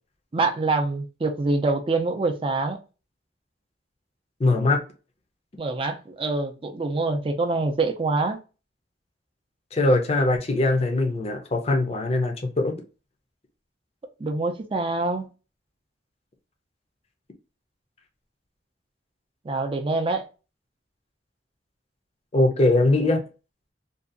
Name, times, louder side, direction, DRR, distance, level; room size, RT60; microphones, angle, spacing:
voice 1, 0.3-2.8 5.6-8.4 14.2-15.3 19.4-20.2, right 3 dB, 30° right, 0.4 m, -25 dB
voice 2, 4.4-4.8 9.7-12.8 22.3-23.2, left 2 dB, 35° left, 0.5 m, -21 dB
2.6 x 2.3 x 2.5 m
head